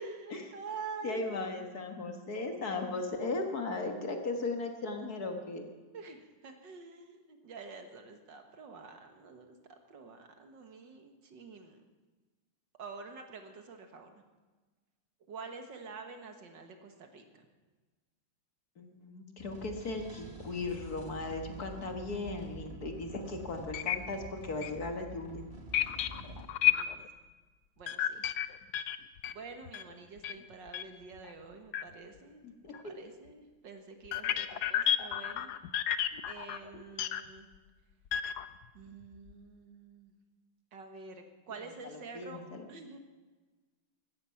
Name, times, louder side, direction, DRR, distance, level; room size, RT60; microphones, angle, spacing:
voice 1, 0.0-1.6 5.9-11.8 12.8-14.2 15.3-17.5 26.6-27.1 27.8-28.3 29.3-32.4 32.8-35.6 36.3-37.5 38.7-40.2 40.7-42.4 42.7-43.0, right 4 dB, 65° right, 5 dB, 2.0 m, -47 dB
voice 2, 1.0-5.6 18.8-25.4 32.4-32.7 42.2-42.6, left 3 dB, 50° left, 4 dB, 1.9 m, -37 dB
sound 1, 19.4-26.4, right 2 dB, 30° right, 1.9 m, -47 dB
sound 2, 23.2-23.3 23.7-24.0 24.3-24.4 24.6-24.7 25.7-27.1 27.9-29.9 30.2-30.4 30.7-30.8 31.2-31.3 31.7-31.8 32.7-32.8 34.1-37.2 38.1-38.7 39.0-39.3, left 11 dB, 65° left, 1.0 m, -31 dB
16.0 x 13.5 x 5.7 m, 1.3 s
omnidirectional pair, 2.2 m